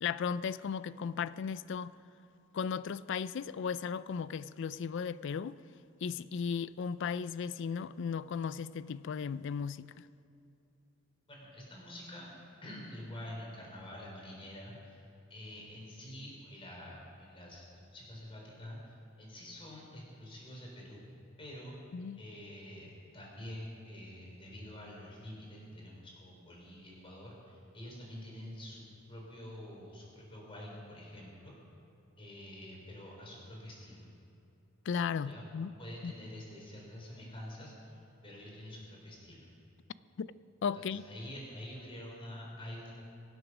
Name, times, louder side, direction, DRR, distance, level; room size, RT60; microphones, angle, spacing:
voice 1, 0.0-2.0 2.5-5.6 6.0-10.0 21.9-22.2 34.9-35.7 36.0-36.1 40.2-40.3 40.6-41.0, left 6 dB, 65° left, 0.4 m, -36 dB
voice 2, 11.3-12.3 12.6-15.0 15.3-21.0 21.4-21.8 22.2-31.5 32.2-34.1 35.3-35.5 35.8-39.5 40.7-42.9, left 1 dB, 25° left, 4.0 m, -47 dB
23.0 x 8.0 x 6.1 m
head